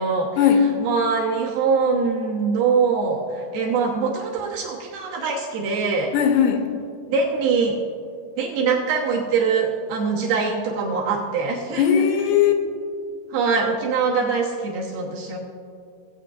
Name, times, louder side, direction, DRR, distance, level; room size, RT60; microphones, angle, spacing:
voice 1, 0.0-0.3 0.8-6.1 7.1-7.8 8.4-11.8 13.3-15.4, right 5 dB, 75° right, -3 dB, 2.6 m, -23 dB
voice 2, 6.1-6.7 11.8-12.5, left 8 dB, 90° left, 4 dB, 3.0 m, -18 dB
17.0 x 8.1 x 2.5 m, 2.4 s
omnidirectional pair, 5.0 m